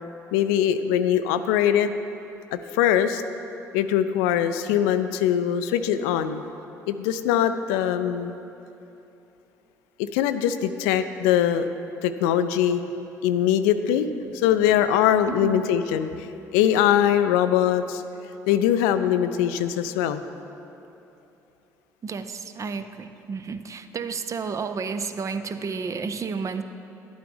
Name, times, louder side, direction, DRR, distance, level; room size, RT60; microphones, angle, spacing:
voice 1, 0.3-1.9 2.5-3.2 3.7-6.4 6.9-8.3 10.0-11.6 12.0-12.8 13.2-16.1 16.5-18.0 18.5-20.2, left 10 dB, 75° left, 11 dB, 0.4 m, -22 dB
voice 2, 15.3-15.6 22.0-26.6, right 5 dB, 40° right, 10 dB, 0.5 m, -31 dB
11.5 x 8.8 x 3.5 m, 2.9 s
hypercardioid pair, 55°, 8 cm